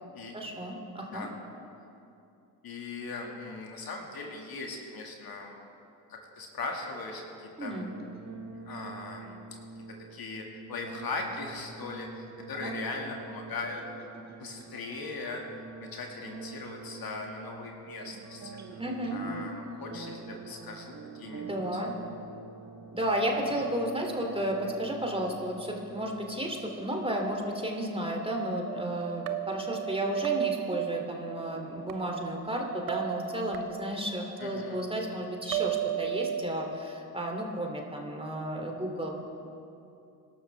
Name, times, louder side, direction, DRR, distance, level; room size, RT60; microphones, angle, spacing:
voice 1, 0.3-1.3 7.6-7.9 12.6-12.7 18.8-19.2 21.5-21.9 22.9-39.1, right 1 dB, 10° right, 1 dB, 2.9 m, -32 dB
voice 2, 2.6-5.6 6.1-7.9 8.6-9.4 10.1-13.8 14.4-15.5 15.8-18.6 19.1-21.6 23.5-23.6 34.4-34.8, left 3 dB, 50° left, 1 dB, 2.3 m, -39 dB
sound 1, 7.7-26.6, right 4 dB, 35° right, 1.6 m, -46 dB
sound 2, 28.7-31.9 32.9-34.1 35.5-36.4, right 13 dB, 75° right, 0.9 m, -34 dB
25.0 x 12.0 x 3.5 m, 2.7 s
figure-of-eight pair, 45°, 47 cm